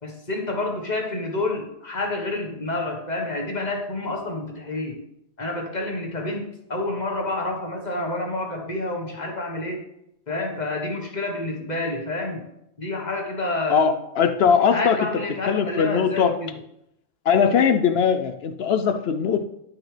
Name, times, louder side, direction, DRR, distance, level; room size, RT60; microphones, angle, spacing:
voice 1, 0.0-5.0 5.4-9.8 10.3-12.5 12.8-13.9 14.7-16.6, left 2 dB, 35° left, 2 dB, 1.2 m, -29 dB
voice 2, 13.7-15.1 15.5-16.3 17.3-19.4, left 7 dB, 65° left, 9 dB, 0.6 m, -20 dB
11.0 x 6.3 x 3.2 m, 0.80 s
omnidirectional pair, 1.4 m